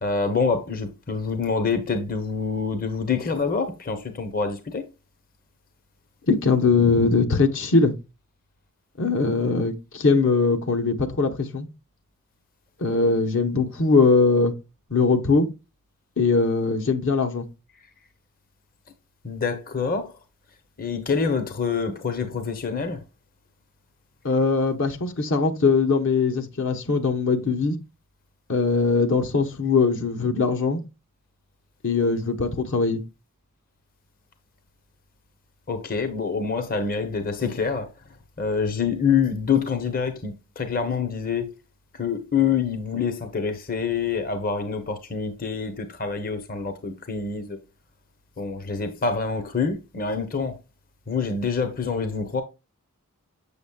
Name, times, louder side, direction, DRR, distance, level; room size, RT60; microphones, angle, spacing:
voice 1, 0.0-4.8 19.2-20.2 20.8-23.0 35.7-37.9 38.4-41.5 42.0-47.6 48.4-50.6 51.1-52.4, left 5 dB, 40° left, 0.8 m, -26 dB
voice 2, 6.3-7.9 9.0-11.7 12.8-14.5 14.9-15.5 16.2-17.4 24.2-27.8 28.5-30.8 31.8-33.0, left 4 dB, 60° left, 1.0 m, -21 dB
7.0 x 6.9 x 2.3 m
head